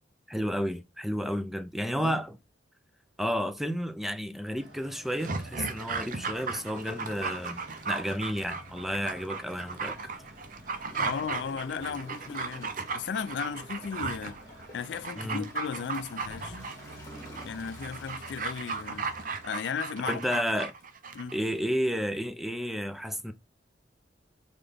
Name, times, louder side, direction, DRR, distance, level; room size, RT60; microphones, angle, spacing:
voice 1, 0.3-2.4 3.2-10.0 15.2-15.5 20.0-20.7 21.3-23.3, equal, ahead, 0.3 m, -31 dB
sound 1, 4.5-19.5, right 1 dB, 75° right, 2.5 m, -50 dB
Dog, 5.1-21.4 21.7-21.8, right 4 dB, 50° right, 0.6 m, -36 dB
Gurgling / Toilet flush, 10.9-20.3 20.8-20.9, equal, 15° left, 1.5 m, -50 dB
voice 2, 11.0-14.4 14.7-16.6 17.4-19.1 19.4-20.2 21.1-21.3, left 6 dB, 70° left, 0.4 m, -35 dB
3.9 x 3.8 x 3.4 m
head